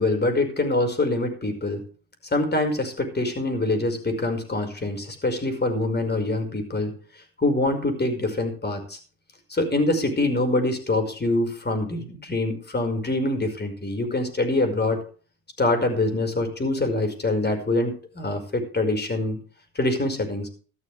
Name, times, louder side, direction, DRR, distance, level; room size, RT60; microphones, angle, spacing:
voice 1, 0.0-1.8 2.3-6.9 7.4-9.0 9.5-15.0 15.6-19.4 19.8-20.5, left 2 dB, 25° left, 6 dB, 5.3 m, -25 dB
14.0 x 13.0 x 3.4 m, 0.40 s
cardioid pair, 80°, 37 cm